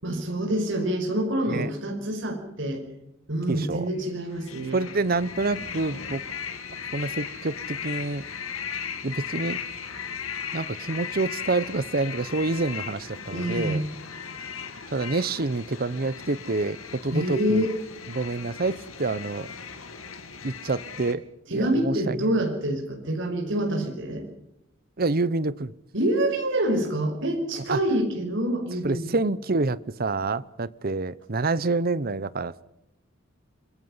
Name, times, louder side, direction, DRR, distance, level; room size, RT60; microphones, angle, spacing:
voice 1, 0.0-2.8 3.3-4.8 13.3-13.9 17.1-17.7 21.5-24.2 25.9-29.1, right 1 dB, 65° right, 3 dB, 5.3 m, -26 dB
voice 2, 3.5-3.9 4.7-6.2 6.9-8.2 9.0-9.6 10.5-13.8 14.9-17.7 18.1-19.5 20.4-21.2 21.5-22.3 25.0-25.7 27.5-27.8 28.8-32.6, right 3 dB, 45° right, 18 dB, 0.8 m, -27 dB
sound 1, 4.0-21.1, left 7 dB, 90° left, 2.5 m, -37 dB
26.5 x 22.0 x 5.7 m, 0.84 s
head